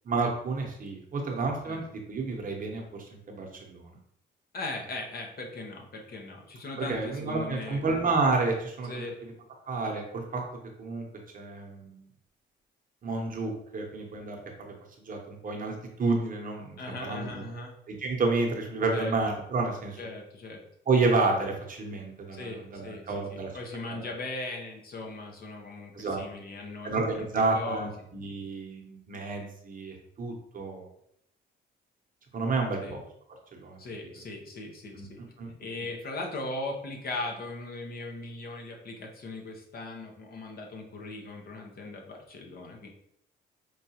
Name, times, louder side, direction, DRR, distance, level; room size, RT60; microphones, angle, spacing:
voice 1, 0.0-4.0 6.8-9.3 9.7-10.4 10.8-11.1 11.3-12.1 13.0-14.7 15.1-17.4 17.9-20.0 20.9-23.5 23.9-24.0 25.9-26.2 26.8-30.9 32.3-33.0 33.5-33.8 34.9-35.1 35.4-35.5, right 3 dB, 45° right, 1 dB, 0.9 m, -30 dB
voice 2, 4.5-7.8 8.8-9.2 16.8-17.7 18.9-19.2 20.0-20.6 22.3-27.3 27.5-27.9 32.8-32.9 33.8-35.2 35.6-42.9, left 2 dB, 50° left, 1 dB, 0.8 m, -39 dB
4.6 x 2.3 x 2.8 m, 0.74 s
cardioid pair, 90°, 20 cm